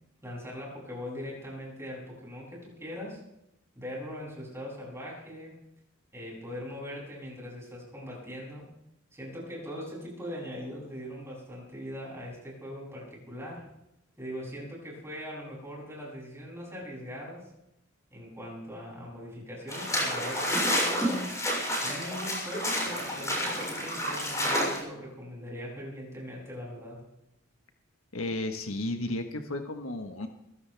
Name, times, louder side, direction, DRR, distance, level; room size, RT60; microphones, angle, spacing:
voice 1, 0.2-3.2 3.7-5.5 6.1-8.7 9.1-13.6 14.2-17.5 18.1-21.3 21.8-27.0, equal, 15° right, -4 dB, 7.8 m, -41 dB
sound 1, 19.7-24.8, equal, 15° left, 7.0 m, -29 dB
voice 2, 28.1-30.3, left 2 dB, 80° left, 6 dB, 1.4 m, -33 dB
23.0 x 16.0 x 3.5 m, 0.84 s
head